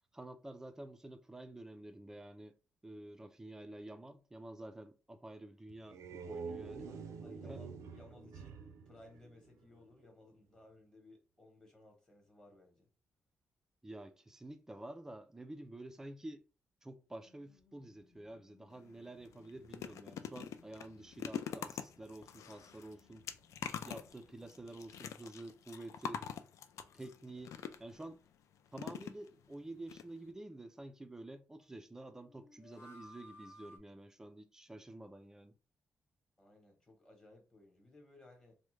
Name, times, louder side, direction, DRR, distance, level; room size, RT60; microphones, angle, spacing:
voice 1, 0.1-2.6 2.8-6.9 7.5-7.6 13.8-16.4 16.8-23.3 23.8-26.2 26.9-28.2 28.7-35.5, right 1 dB, 10° right, 0.3 m, -49 dB
sound 1, 5.7-9.9, right 5 dB, 85° right, 0.5 m, -47 dB
voice 2, 6.9-12.9 27.5-27.7 36.4-38.6, left 1 dB, 15° left, 0.9 m, -60 dB
sound 2, 17.2-25.1 25.3-25.4 32.2-33.8, left 1 dB, 50° left, 0.7 m, -62 dB
sound 3, 18.7-18.9 19.3-28.0 28.7-29.5 29.9-30.0 30.3-30.4, left 8 dB, 80° left, 0.4 m, -45 dB
3.4 x 2.1 x 3.1 m
wide cardioid pair, 160°, 5 cm